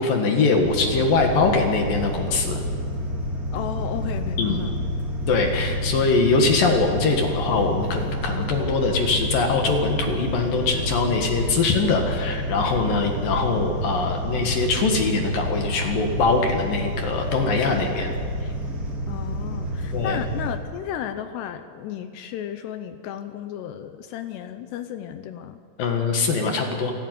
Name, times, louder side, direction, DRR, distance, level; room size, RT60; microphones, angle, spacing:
voice 1, 0.0-2.6 4.4-4.7 5.3-18.1 19.9-20.2 25.8-26.9, left 4 dB, 60° left, 3 dB, 2.8 m, -22 dB
sound 1, 0.6-20.5, equal, 25° right, 2.4 m, -29 dB
voice 2, 3.5-4.9 19.1-25.6, left 10 dB, 75° left, 9 dB, 2.6 m, -33 dB
sound 2, 9.7-17.6, right 4 dB, 5° left, 3.2 m, -41 dB
27.0 x 12.0 x 9.4 m, 2.3 s
omnidirectional pair, 5.5 m